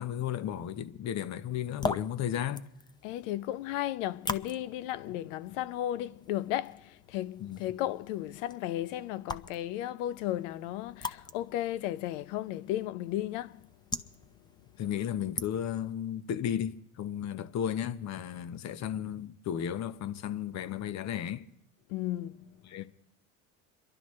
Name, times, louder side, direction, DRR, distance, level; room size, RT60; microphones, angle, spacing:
voice 1, 0.0-2.7 7.4-7.6 14.8-21.4 22.6-22.9, left 10 dB, 45° left, 1.0 m, -34 dB
sound 1, 1.5-15.9, left 3 dB, 10° left, 0.6 m, -43 dB
voice 2, 3.0-13.7 21.9-22.6, left 13 dB, 75° left, 0.7 m, -34 dB
28.0 x 12.0 x 3.2 m
supercardioid pair, 90°, 37 cm